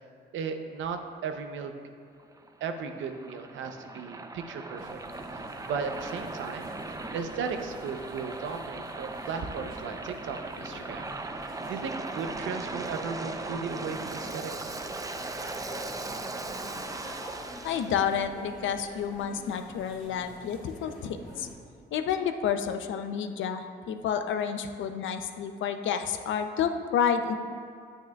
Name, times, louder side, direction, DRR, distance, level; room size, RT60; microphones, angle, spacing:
voice 1, 0.3-1.7 2.6-5.0 5.4-6.7 7.1-11.1 11.4-14.7, right 5 dB, 75° right, 6 dB, 0.7 m, -36 dB
Waves surf, 2.2-18.0, right 2 dB, 15° right, 0.5 m, -38 dB
sound 1, 4.8-21.6, left 1 dB, ahead, 1.8 m, -47 dB
voice 2, 17.6-21.5 21.9-27.4, left 7 dB, 75° left, 8 dB, 0.6 m, -30 dB
9.3 x 8.8 x 2.3 m, 2.3 s
cardioid pair, 90°, 20 cm